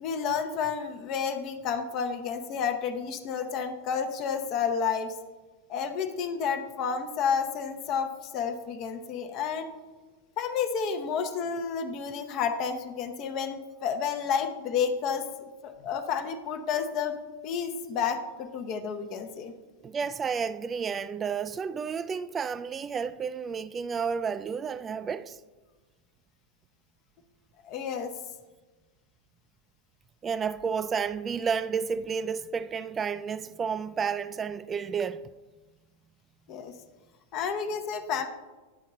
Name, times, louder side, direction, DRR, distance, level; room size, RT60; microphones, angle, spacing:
voice 1, 0.0-5.1 5.7-9.7 10.4-15.2 15.6-17.2 17.4-19.5 27.6-28.1 36.5-36.7 37.3-38.3, left 6 dB, 40° left, 0.7 m, -30 dB
voice 2, 19.8-25.4 30.2-35.2, right 6 dB, 20° right, 0.3 m, -31 dB
9.6 x 3.7 x 5.4 m
figure-of-eight pair, 90°, 0 cm